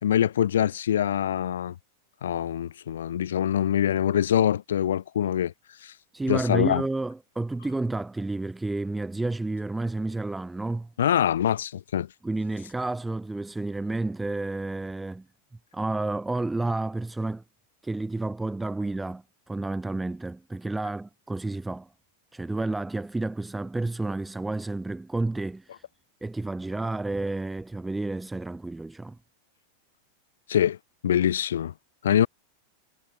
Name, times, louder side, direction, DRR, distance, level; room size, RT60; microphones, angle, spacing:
voice 1, 0.0-1.7 2.2-5.5 5.8-5.9 6.3-6.8 11.0-12.1 30.5-30.8 31.0-31.7 32.0-32.3, left 10 dB, 65° left, 2.7 m, -24 dB
voice 2, 6.1-10.9 12.2-15.2 15.7-17.4 17.8-21.9 22.3-25.8 26.2-29.2, right 2 dB, 5° right, 1.4 m, -30 dB
figure-of-eight pair, 90°, 0 cm